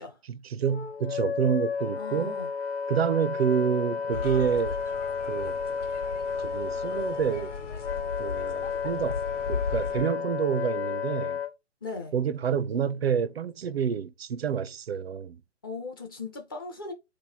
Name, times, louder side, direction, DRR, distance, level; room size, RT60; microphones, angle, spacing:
voice 1, 0.3-2.4 2.9-4.8 5.3-5.6 6.4-7.6 8.2-9.2 9.5-11.4 12.1-15.4, right 7 dB, 60° right, 0.4 m, -28 dB
Wind instrument woodwind instrument, 0.7-11.5, left 6 dB, 60° left, 0.8 m, -32 dB
voice 2, 2.0-2.5 11.8-12.1 15.6-16.9, left 4 dB, 20° left, 0.4 m, -38 dB
sound 1, 4.1-10.0, left 5 dB, 85° left, 1.1 m, -37 dB
3.9 x 3.1 x 4.0 m
figure-of-eight pair, 130°, 36 cm